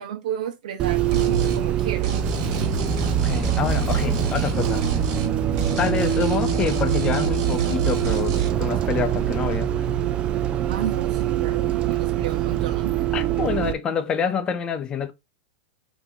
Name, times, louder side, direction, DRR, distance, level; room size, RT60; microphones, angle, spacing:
voice 1, 0.0-2.2 10.7-13.0, right 9 dB, 75° right, 1.1 m, -32 dB
Bus, 0.8-13.7, right 13 dB, 25° right, 0.3 m, -24 dB
sound 1, 1.1-1.6 2.0-5.3 5.6-8.5, right 3 dB, 55° right, 1.4 m, -28 dB
sound 2, 2.3-10.1, left 6 dB, 65° left, 0.8 m, -38 dB
voice 2, 3.0-4.9 5.7-9.7 13.1-15.1, left 6 dB, 20° left, 0.7 m, -27 dB
4.0 x 3.0 x 3.9 m
supercardioid pair, 145°, 4 cm